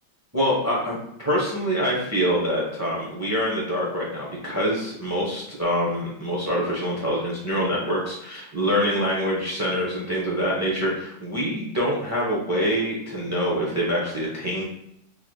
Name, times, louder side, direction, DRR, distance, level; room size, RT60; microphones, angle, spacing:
voice 1, 0.3-14.6, equal, 20° right, -5 dB, 0.4 m, -25 dB
5.8 x 3.1 x 2.3 m, 0.76 s
omnidirectional pair, 2.1 m